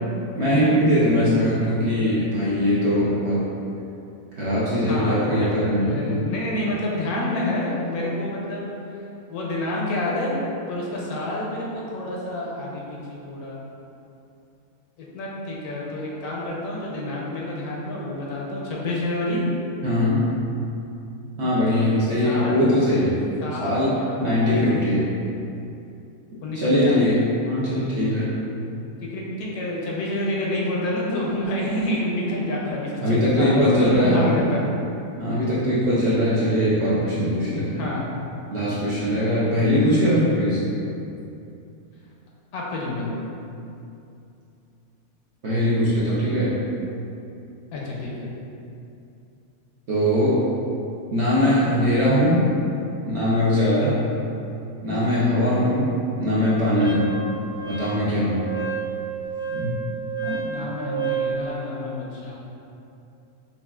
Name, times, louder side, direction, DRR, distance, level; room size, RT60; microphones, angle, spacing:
voice 1, 0.3-3.4 4.3-6.2 19.8-20.3 21.4-23.2 23.6-25.0 26.5-28.3 33.0-34.2 35.2-37.9 38.5-40.6 45.4-46.6 49.9-50.4 51.1-52.4 53.0-54.0 54.8-57.1 57.7-58.5 59.5-59.7 60.2-60.4, equal, 55° right, -9 dB, 0.8 m, -21 dB
voice 2, 4.8-5.5 5.8-8.6 9.3-10.4 10.7-13.6 15.0-19.4 21.9-22.7 23.0-23.1 23.4-24.8 26.4-27.0 29.0-34.6 37.8-38.1 42.5-43.1 47.7-48.1 60.4-62.3, left 1 dB, 75° left, -4 dB, 1.1 m, -28 dB
Wind instrument woodwind instrument, 56.8-61.4, right 6 dB, 30° right, 0.5 m, -30 dB
5.4 x 2.4 x 2.3 m, 2.7 s
omnidirectional pair, 1.7 m